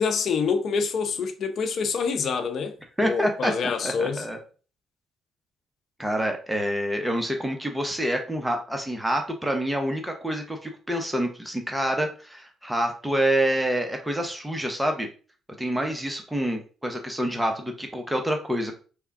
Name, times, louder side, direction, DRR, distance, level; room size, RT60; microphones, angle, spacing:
voice 1, 0.0-2.7 3.0-4.2, left 5 dB, 60° left, 0.6 m, -26 dB
voice 2, 3.0-4.4 6.0-15.1 15.6-18.7, equal, 5° right, 0.8 m, -27 dB
3.5 x 2.3 x 3.5 m
cardioid pair, 80°, 0 cm